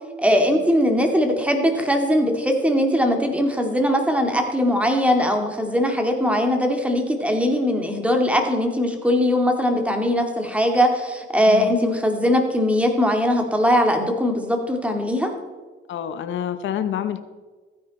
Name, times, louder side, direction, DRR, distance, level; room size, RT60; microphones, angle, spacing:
voice 1, 0.2-15.3, equal, 5° right, 3 dB, 2.3 m, -20 dB
voice 2, 15.9-17.2, left 9 dB, 70° left, 11 dB, 0.8 m, -27 dB
15.0 x 9.7 x 4.2 m, 1.3 s
cardioid pair, 90°, 20 cm